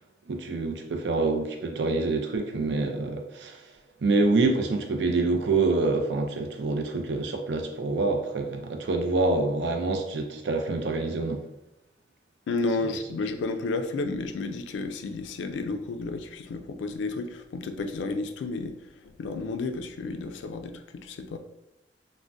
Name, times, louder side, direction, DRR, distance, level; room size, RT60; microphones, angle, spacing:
voice 1, 0.3-3.7 4.0-11.4, right 3 dB, 75° right, 4 dB, 0.4 m, -26 dB
voice 2, 12.5-18.8 19.0-21.4, left 3 dB, 90° left, 8 dB, 0.3 m, -32 dB
2.5 x 2.1 x 3.3 m, 0.90 s
head